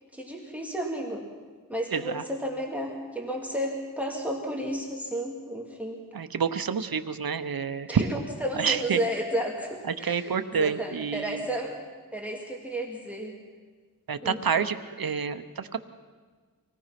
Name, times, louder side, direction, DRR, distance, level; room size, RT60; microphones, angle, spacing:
voice 1, 0.1-1.2 1.7-6.0 7.9-11.8 12.1-13.3 14.2-14.4, right 1 dB, 5° right, 0 dB, 2.5 m, -32 dB
voice 2, 1.9-2.2 6.1-8.1 8.5-9.0 9.8-11.5 14.1-15.8, right 6 dB, 80° right, 11 dB, 0.9 m, -28 dB
25.5 x 18.0 x 5.9 m, 1.4 s
wide cardioid pair, 80°, 35 cm